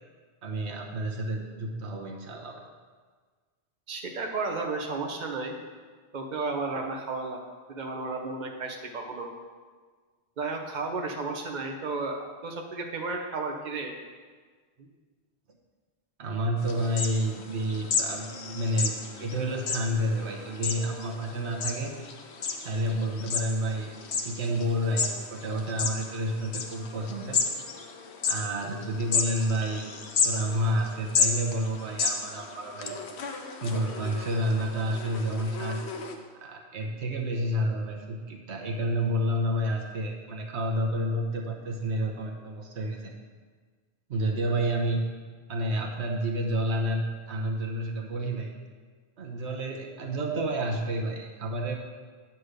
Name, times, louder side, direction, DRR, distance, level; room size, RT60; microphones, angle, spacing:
voice 1, 0.4-2.6 16.2-21.9 22.6-27.4 28.3-30.0 30.2-33.0 33.6-35.8 36.3-43.1 44.1-45.0 45.5-48.5 49.2-51.8, equal, 90° right, 1 dB, 1.3 m, -30 dB
voice 2, 3.9-5.5 6.1-7.4 7.7-9.3 10.4-13.9 14.8-14.9, right 3 dB, 45° right, 2 dB, 1.0 m, -33 dB
sound 1, 16.6-36.2, left 5 dB, 80° left, 1.1 m, -33 dB
9.6 x 4.3 x 6.5 m, 1.5 s
omnidirectional pair, 1.1 m